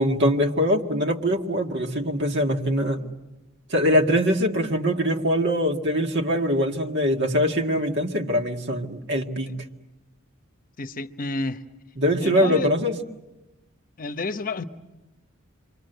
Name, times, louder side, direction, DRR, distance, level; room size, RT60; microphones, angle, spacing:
voice 1, 0.0-3.0 3.7-9.5 12.0-13.0, equal, 60° right, 3 dB, 2.0 m, -23 dB
voice 2, 10.8-11.6 12.2-12.7 14.0-14.6, left 2 dB, 45° left, 11 dB, 0.9 m, -30 dB
29.0 x 24.0 x 8.0 m, 1.0 s
head